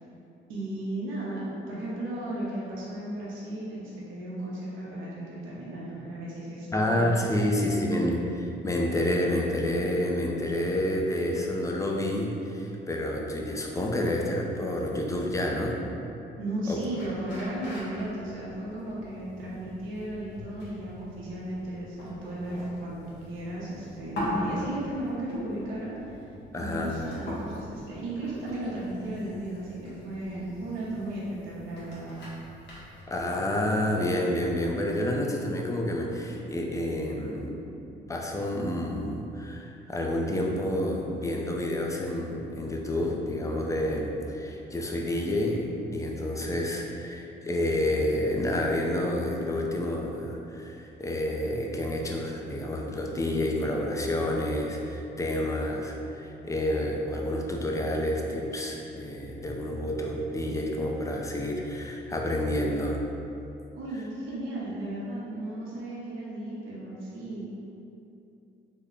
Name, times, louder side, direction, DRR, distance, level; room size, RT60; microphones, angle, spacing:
voice 1, 0.5-7.5 16.4-26.2 26.5-32.2 63.7-67.4, right 1 dB, 85° right, -7 dB, 0.8 m, -35 dB
voice 2, 6.7-15.8 16.7-16.8 26.5-27.0 33.1-37.6 38.1-63.0, left 1 dB, 15° left, 0 dB, 0.4 m, -29 dB
sound 1, 17.0-33.0, left 1 dB, 65° left, 1.0 m, -41 dB
3.5 x 2.1 x 3.6 m, 2.8 s
cardioid pair, 90°, 20 cm